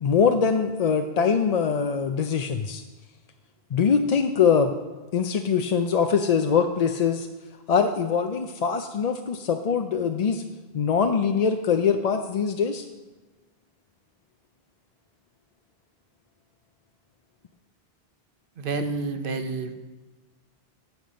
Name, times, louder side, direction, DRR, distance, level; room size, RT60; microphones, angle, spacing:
voice 1, 0.0-2.8 3.7-4.7 5.1-7.3 7.7-10.4 10.7-12.9, left 6 dB, 50° left, 6 dB, 0.5 m, -23 dB
voice 2, 18.6-19.7, right 3 dB, 60° right, 8 dB, 1.0 m, -29 dB
11.5 x 7.3 x 5.2 m, 1.2 s
omnidirectional pair, 1.0 m